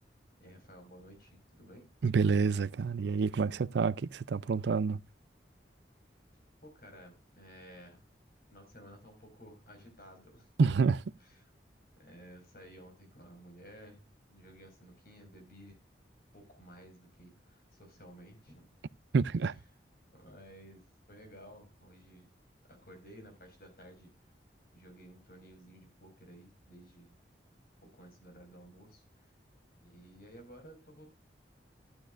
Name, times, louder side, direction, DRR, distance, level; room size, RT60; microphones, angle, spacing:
voice 1, 0.4-1.9 6.6-8.0 8.5-10.5 11.2-11.5 12.0-14.0 14.3-15.8 16.3-18.6 19.4-19.6 20.1-22.3 22.7-24.3 24.7-27.2 27.8-29.3 29.8-31.1, equal, 50° left, 5.0 m, -54 dB
voice 2, 2.0-5.0 10.6-11.0 19.1-19.5, right 5 dB, 70° right, 0.4 m, -28 dB
12.5 x 11.5 x 2.4 m
head